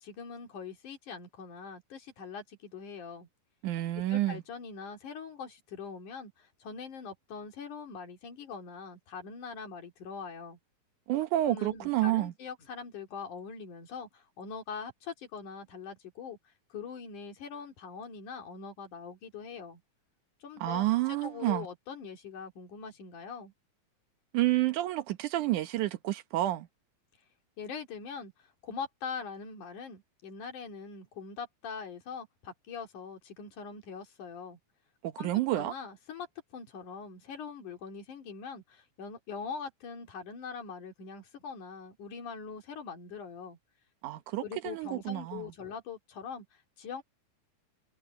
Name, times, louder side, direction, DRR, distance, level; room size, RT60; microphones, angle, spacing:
voice 1, 0.0-3.3 4.1-10.6 11.5-16.4 16.7-19.8 20.4-20.9 21.2-23.5 27.6-34.6 35.2-43.6 44.4-47.0, left 5 dB, 85° left, 4.3 m, -42 dB
voice 2, 3.6-4.4 11.1-12.3 20.6-21.7 24.3-26.7 35.0-35.7 44.0-45.5, right 15 dB, 85° right, 2.6 m, -29 dB
omnidirectional pair, 3.5 m